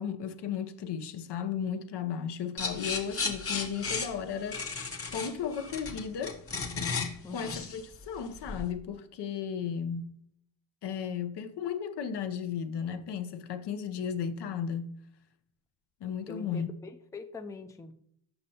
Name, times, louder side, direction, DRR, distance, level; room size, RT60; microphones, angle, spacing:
voice 1, 0.0-4.8 5.1-6.4 7.3-10.2 10.8-15.0 16.0-16.7, left 7 dB, 65° left, 0.7 m, -35 dB
sound 1, 2.6-8.7, left 4 dB, 30° left, 0.9 m, -35 dB
voice 2, 7.2-7.7 16.2-17.9, left 3 dB, 10° left, 0.4 m, -43 dB
6.7 x 5.4 x 2.8 m
cardioid pair, 85°, 44 cm